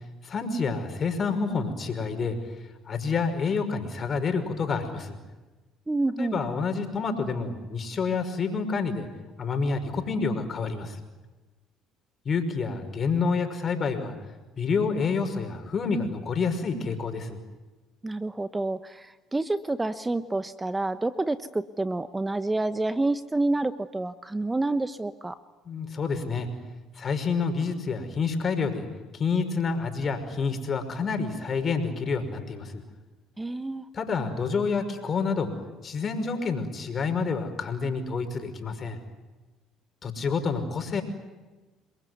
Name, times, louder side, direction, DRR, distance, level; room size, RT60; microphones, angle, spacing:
voice 1, 0.2-2.4 2.9-5.2 6.2-9.1 9.4-11.0 12.3-14.1 14.6-17.4 25.7-26.5 27.0-28.9 29.1-32.8 33.9-35.5 35.8-39.0 40.0-41.0, left 4 dB, 45° left, 7 dB, 5.6 m, -28 dB
voice 2, 5.9-6.4 18.0-25.4 33.4-33.8, right 2 dB, 15° right, 12 dB, 1.0 m, -28 dB
28.5 x 22.0 x 9.5 m, 1.2 s
supercardioid pair, 70°, 0 cm